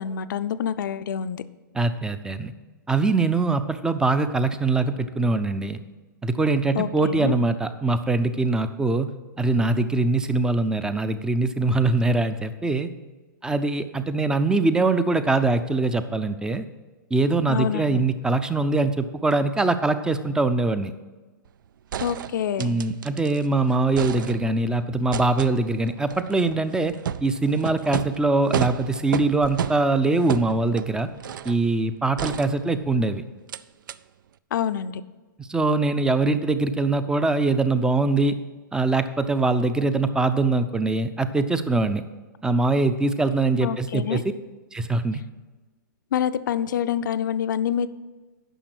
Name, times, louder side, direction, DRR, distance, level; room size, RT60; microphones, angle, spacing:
voice 1, 0.0-1.4 6.7-7.3 17.5-18.0 22.0-22.7 34.5-35.0 43.6-44.2 46.1-47.9, left 9 dB, 65° left, 12 dB, 0.5 m, -26 dB
voice 2, 1.7-2.5 2.9-5.8 6.2-9.1 9.4-12.9 13.4-16.7 17.1-20.9 22.6-27.0 27.2-31.1 31.4-33.2 35.4-38.3 38.7-42.0 42.4-44.2 44.7-45.2, right 3 dB, 5° right, 12 dB, 0.5 m, -23 dB
sound 1, 21.5-21.6 21.9-23.5 23.7-24.7 25.1-31.6 32.2-33.0 33.5-33.6 33.9-34.0, right 9 dB, 70° right, 0.4 m, -32 dB
10.0 x 6.1 x 6.3 m, 1.3 s
hypercardioid pair, 125°, 11 cm